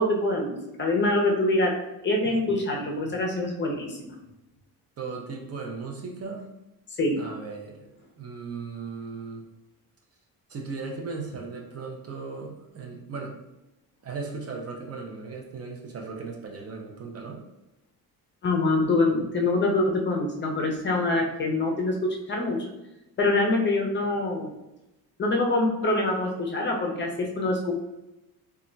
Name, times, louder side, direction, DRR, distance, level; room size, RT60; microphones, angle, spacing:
voice 1, 0.0-1.7 2.0-4.1 7.0-7.2 18.4-22.7 23.2-24.5 25.2-27.7, left 2 dB, 30° left, 0 dB, 0.5 m, -25 dB
voice 2, 5.0-6.5 7.2-7.9 8.2-9.4 10.5-13.4 14.0-17.4, right 4 dB, 40° right, 1 dB, 0.5 m, -37 dB
2.3 x 2.1 x 3.8 m, 0.94 s
cardioid pair, 115°, 38 cm